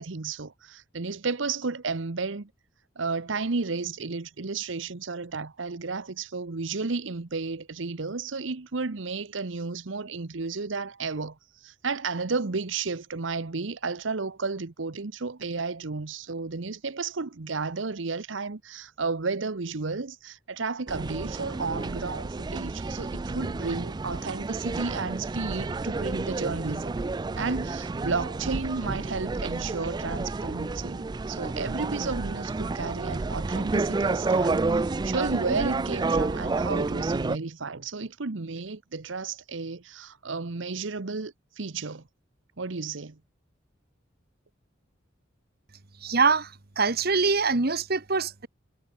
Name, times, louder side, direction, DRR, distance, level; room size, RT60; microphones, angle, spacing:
voice 1, 0.0-2.5 3.0-26.9 27.4-42.0 42.6-43.2, right 4 dB, 75° right, 1.0 m, -32 dB
sound 1, 20.9-37.4, right 3 dB, 20° right, 0.3 m, -30 dB
voice 2, 46.0-48.5, right 4 dB, 50° right, 1.5 m, -24 dB
head